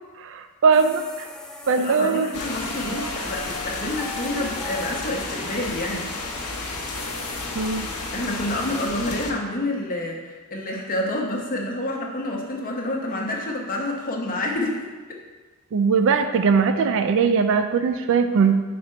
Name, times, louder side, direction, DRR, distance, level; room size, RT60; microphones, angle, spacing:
voice 1, 0.2-1.3 1.7-2.3 2.9-3.0 7.6-7.9 15.7-18.6, right 5 dB, 60° right, 8 dB, 0.4 m, -20 dB
sound 1, 0.7-8.9, left 1 dB, 5° left, 0.4 m, -39 dB
voice 2, 1.8-6.1 8.1-15.2, left 1 dB, 40° left, 0 dB, 0.9 m, -28 dB
sound 2, 2.3-9.3, left 3 dB, 80° left, 0.8 m, -32 dB
5.0 x 4.3 x 4.4 m, 1.3 s
head